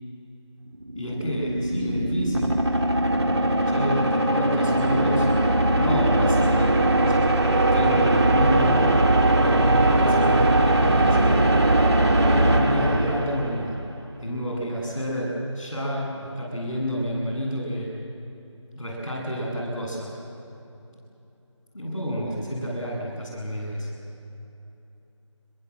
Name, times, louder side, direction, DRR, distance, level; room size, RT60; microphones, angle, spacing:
sound 1, 0.7-13.9, right 1 dB, 55° right, 2.4 m, -20 dB
voice 1, 0.9-2.6 3.7-5.3 5.7-6.7 7.1-7.2 7.4-9.0 9.8-11.3 12.2-13.8 14.2-17.9 18.7-20.1 21.7-23.9, equal, 10° left, -13 dB, 7.6 m, -29 dB
26.0 x 23.0 x 7.8 m, 2.9 s
figure-of-eight pair, 175°, 16 cm